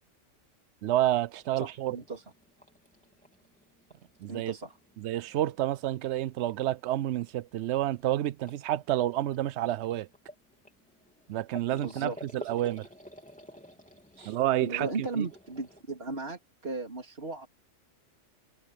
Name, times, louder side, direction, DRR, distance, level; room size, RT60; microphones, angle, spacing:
voice 1, 0.8-2.0 4.2-4.5 5.0-10.1 11.3-12.9 14.3-14.9 15.2-15.3, right 13 dB, 70° right, 0.8 m, -29 dB
sound 1, 1.4-15.8, equal, 5° left, 3.5 m, -52 dB
voice 2, 1.6-2.2 4.2-4.8 11.7-12.2 12.4-12.5 14.2-17.5, right 3 dB, 50° right, 3.6 m, -37 dB
omnidirectional pair, 1.3 m